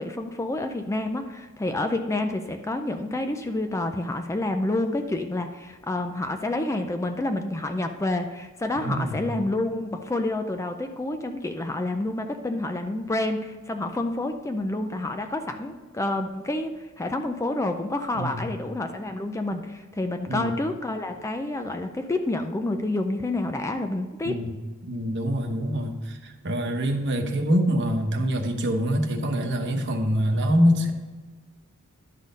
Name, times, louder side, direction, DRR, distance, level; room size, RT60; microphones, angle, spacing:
voice 1, 0.0-24.4, left 2 dB, 15° left, 6 dB, 0.4 m, -28 dB
voice 2, 8.8-9.2 18.1-18.6 20.3-20.5 24.2-24.5 24.9-30.9, equal, 55° right, 4 dB, 1.0 m, -25 dB
11.5 x 4.2 x 5.3 m, 1.4 s
head